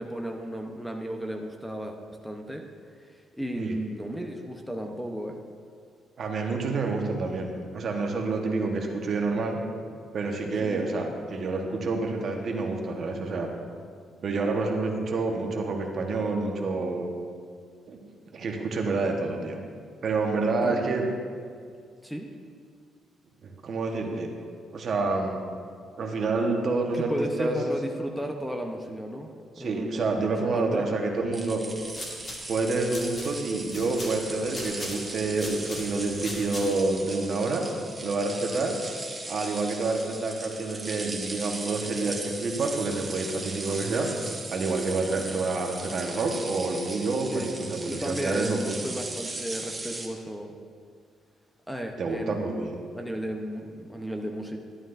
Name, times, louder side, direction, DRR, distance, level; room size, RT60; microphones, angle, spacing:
voice 1, 0.0-2.0 2.2-2.6 3.1-5.4 10.6-10.8 20.6-21.0 22.0-22.3 26.9-29.3 29.6-30.2 30.5-30.9 47.3-47.5 47.8-50.6 51.7-52.7 52.9-54.6, equal, ahead, 3 dB, 0.8 m, -34 dB
voice 2, 6.2-9.6 10.1-13.5 14.2-17.1 17.9-18.0 18.3-19.6 20.0-21.1 23.4-24.3 24.7-25.4 26.0-27.1 27.4-27.6 29.6-31.6 32.5-37.7 38.0-38.8 39.3-44.1 44.5-48.8 52.0-52.8, right 3 dB, 55° right, 2 dB, 1.2 m, -28 dB
sound 1, 31.3-50.1, right 2 dB, 15° right, 1.3 m, -38 dB
sound 2, 31.8-37.0, left 1 dB, 40° left, 1.7 m, -41 dB
11.0 x 11.0 x 2.6 m, 2.1 s
cardioid pair, 90°, 0 cm